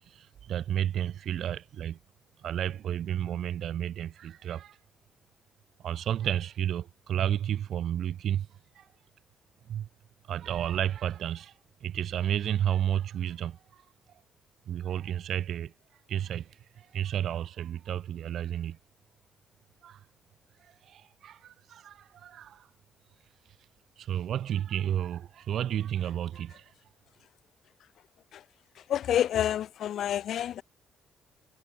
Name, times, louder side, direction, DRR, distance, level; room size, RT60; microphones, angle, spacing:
voice 1, 0.1-2.0 2.4-4.8 5.8-8.5 8.7-8.9 9.7-9.9 10.3-11.5 11.8-13.8 14.7-15.7 16.1-18.8 19.8-20.0 20.6-22.7 24.0-26.7, right 10 dB, 70° right, 2.8 m, -32 dB
voice 2, 28.9-30.6, left 10 dB, 70° left, 0.4 m, -28 dB
cardioid pair, 90°, 0 cm